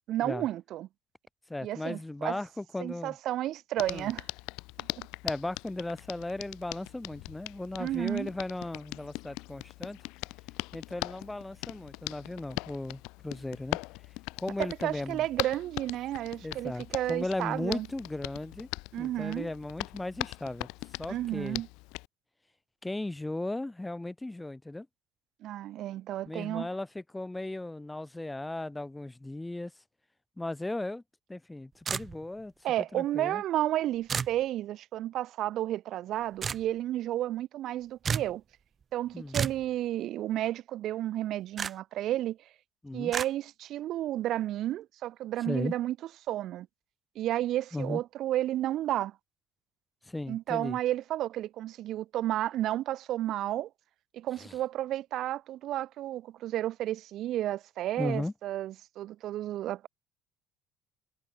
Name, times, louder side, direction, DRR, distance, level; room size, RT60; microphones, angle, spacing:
voice 1, 0.1-0.9 1.6-2.4 2.8-4.3 4.8-5.1 7.8-8.3 14.6-17.9 18.9-19.5 21.1-21.7 25.4-26.7 32.6-38.4 38.9-42.4 42.9-46.0 46.3-46.7 47.2-49.2 50.3-53.7 54.1-59.9, right 13 dB, 60° right, 0.4 m, -32 dB
voice 2, 1.5-3.2 3.9-4.1 5.2-10.0 10.7-13.8 14.4-15.2 16.4-18.7 19.0-20.7 21.0-21.6 22.8-24.9 26.3-29.7 30.4-31.0 31.3-32.5 32.9-33.4 39.1-39.4 42.8-43.1 45.4-45.7 47.7-48.0 50.0-50.8 54.4-54.5 58.0-58.3, left 2 dB, 10° left, 1.6 m, -36 dB
Hands, 3.8-22.1, left 25 dB, 80° left, 1.5 m, -41 dB
sound 1, 31.9-32.4 34.1-34.4 36.4-36.6 38.0-38.3 39.3-39.6 41.6-41.7 43.1-43.3, right 6 dB, 35° right, 0.8 m, -31 dB
supercardioid pair, 95°, 0 cm